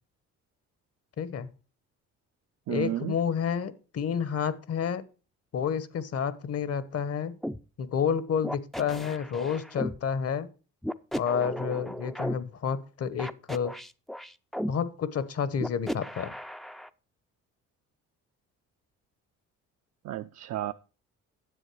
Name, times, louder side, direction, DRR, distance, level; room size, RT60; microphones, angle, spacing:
voice 1, 1.2-1.5 2.7-5.0 5.5-7.4 7.8-10.5 11.2-13.7 14.7-16.3, left 7 dB, 55° left, 1.1 m, -30 dB
voice 2, 2.7-3.2 20.0-20.7, right 13 dB, 65° right, 0.5 m, -32 dB
sound 1, 7.4-7.6 8.4-10.0 10.8-12.3 13.2-14.7 15.6-16.9, equal, ahead, 0.4 m, -35 dB
9.9 x 7.6 x 4.7 m
cardioid pair, 90°, 30 cm